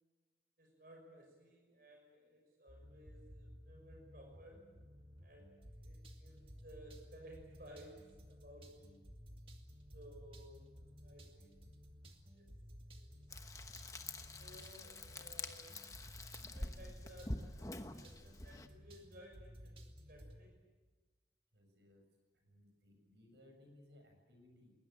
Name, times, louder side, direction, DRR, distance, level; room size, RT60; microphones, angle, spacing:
voice 1, 0.6-4.7 5.2-9.0 9.9-10.7 11.0-11.6 12.3-12.5 12.9-13.1 14.4-15.9 16.5-20.6, equal, 55° right, 1 dB, 6.1 m, -58 dB
sound 1, 2.7-20.4, equal, 30° right, 2.1 m, -56 dB
Frying (food), 13.3-18.7, left 2 dB, 20° left, 1.1 m, -47 dB
voice 2, 21.5-22.1 22.3-24.7, left 1 dB, 80° right, 4 dB, 7.2 m, -63 dB
21.0 x 20.5 x 9.0 m, 1.3 s
head